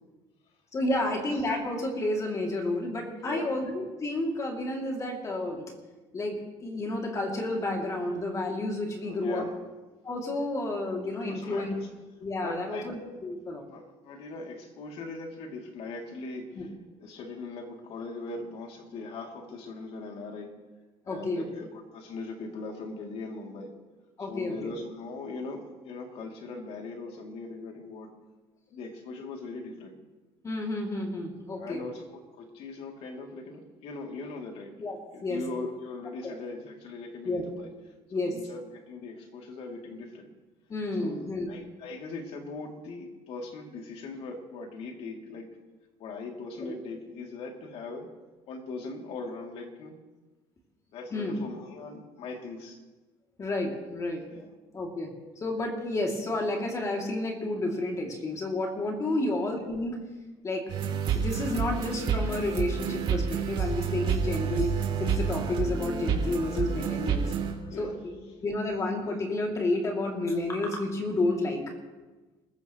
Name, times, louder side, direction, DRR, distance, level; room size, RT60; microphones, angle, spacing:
voice 1, 0.7-5.6 6.1-9.5 10.0-11.8 12.2-13.7 16.5-16.7 21.1-21.6 24.2-24.7 30.4-31.8 34.8-35.4 36.2-36.3 37.2-37.4 38.1-38.4 40.7-41.5 46.6-46.7 51.1-51.4 53.4-54.2 54.7-60.0 60.4-60.6 61.1-64.7 65.0-67.3 67.8-71.7, left 2 dB, 30° left, 1 dB, 2.8 m, -31 dB
voice 2, 9.0-9.5 11.2-11.8 12.4-12.9 13.7-16.7 17.0-20.6 21.0-23.7 24.3-28.1 28.7-30.0 31.5-34.7 35.1-37.7 38.3-40.3 41.0-45.5 46.0-48.1 48.5-50.0 50.9-52.8 54.3-54.5 59.1-59.3 67.7-68.0, left 3 dB, 65° left, 2 dB, 2.9 m, -40 dB
sound 1, 60.7-67.5, right 6 dB, 55° right, 3.1 m, -29 dB
28.5 x 15.0 x 3.2 m, 1.2 s
cardioid pair, 130°, 11 cm